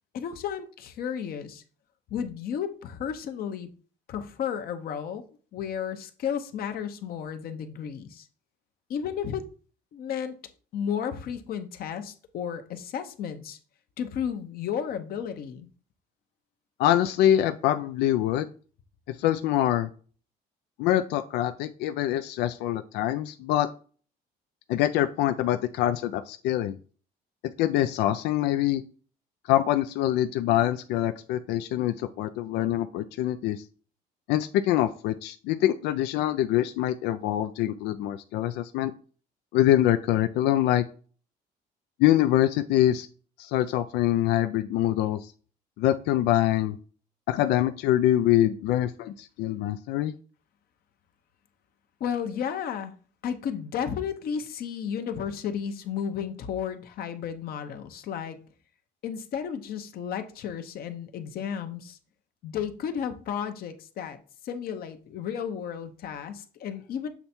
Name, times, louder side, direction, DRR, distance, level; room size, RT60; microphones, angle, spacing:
voice 1, 0.1-1.6 2.1-3.7 4.1-5.2 5.5-8.3 8.9-9.4 9.9-10.3 10.7-13.6 14.0-15.7 52.0-52.9 53.2-58.4 59.0-62.0 62.4-64.2 64.4-67.1, left 8 dB, 60° left, 0.9 m, -33 dB
voice 2, 16.8-18.5 19.1-19.9 20.8-23.7 24.7-26.8 27.4-28.8 29.5-33.6 34.3-38.9 39.5-40.8 42.0-43.1 43.4-45.3 45.8-46.8 47.3-50.1, left 13 dB, 85° left, 0.4 m, -24 dB
7.1 x 3.4 x 4.3 m
cardioid pair, 110°, 17 cm